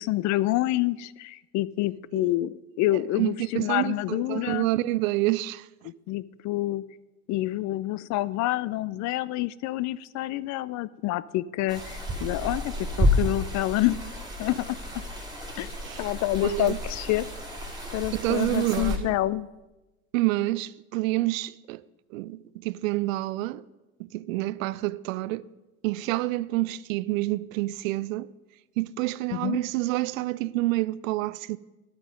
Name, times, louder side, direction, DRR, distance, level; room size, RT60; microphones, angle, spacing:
voice 1, 0.0-4.7 5.8-6.8 7.3-14.0 14.4-14.8 15.6-15.7 16.0-17.3 17.9-19.5 29.3-29.6, left 16 dB, 45° left, 0.4 m, -27 dB
voice 2, 3.2-5.7 15.8-16.1 16.4-16.8 18.1-19.1 20.1-21.8 22.1-23.6 24.0-25.4 25.8-28.3 28.8-31.6, right 18 dB, 70° right, 0.5 m, -28 dB
sound 1, 11.7-19.0, left 1 dB, 10° right, 2.6 m, -30 dB
11.5 x 8.9 x 5.1 m
hypercardioid pair, 70°, 43 cm